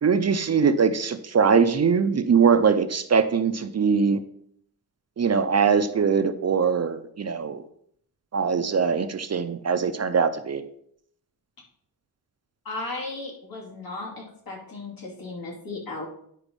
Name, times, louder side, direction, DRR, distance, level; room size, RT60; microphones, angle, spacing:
voice 1, 0.0-4.2 5.2-7.6 8.3-10.6, right 6 dB, 40° right, 10 dB, 0.5 m, -22 dB
voice 2, 12.6-16.0, left 3 dB, 65° left, -2 dB, 2.8 m, -35 dB
9.7 x 4.9 x 5.2 m, 0.67 s
wide cardioid pair, 170°, 39 cm